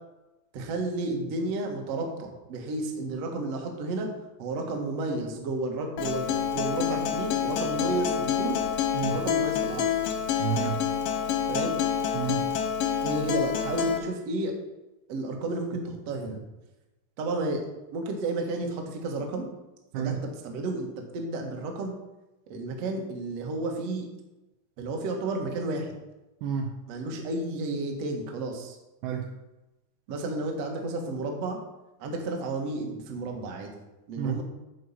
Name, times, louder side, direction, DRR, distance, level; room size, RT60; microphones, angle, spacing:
voice 1, 0.5-4.1 4.4-8.6 9.1-9.9 11.5-11.8 13.0-14.5 15.1-16.4 17.2-17.6 17.9-19.5 19.9-21.9 22.5-24.1 24.8-25.9 26.9-28.8 30.1-31.6 32.0-33.7 34.1-34.4, right 2 dB, 65° right, 1 dB, 1.6 m, -32 dB
Acoustic guitar, 6.0-14.0, left 8 dB, 75° left, 2.1 m, -28 dB
voice 2, 10.4-10.9 12.1-12.5 19.9-20.2 26.4-26.7 29.0-29.3 34.2-34.4, right 7 dB, 85° right, 2 dB, 2.3 m, -30 dB
11.0 x 4.8 x 7.2 m, 1.0 s
omnidirectional pair, 5.3 m